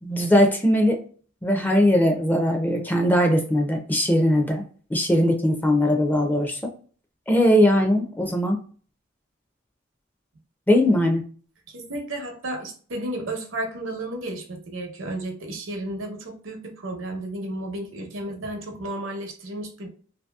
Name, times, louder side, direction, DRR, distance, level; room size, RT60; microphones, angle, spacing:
voice 1, 0.0-1.0 1.4-4.6 4.9-6.6 7.3-8.6 10.7-11.2, equal, 10° left, 3 dB, 0.4 m, -20 dB
voice 2, 11.7-19.9, right 1 dB, 80° right, 3 dB, 0.8 m, -33 dB
2.7 x 2.7 x 2.2 m, 0.42 s
head